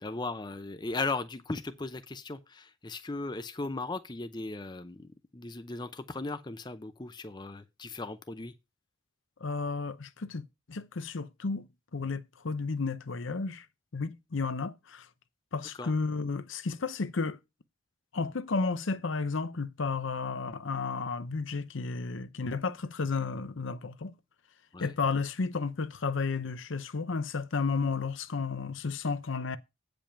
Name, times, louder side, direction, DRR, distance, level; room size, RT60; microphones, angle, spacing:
voice 1, 0.0-8.5 15.7-15.9 24.7-24.9, left 3 dB, 20° left, 0.5 m, -37 dB
voice 2, 9.4-11.7 11.9-13.7 13.9-15.1 15.5-17.4 18.1-24.1 24.8-29.6, left 4 dB, 70° left, 0.7 m, -32 dB
8.8 x 5.3 x 5.7 m
head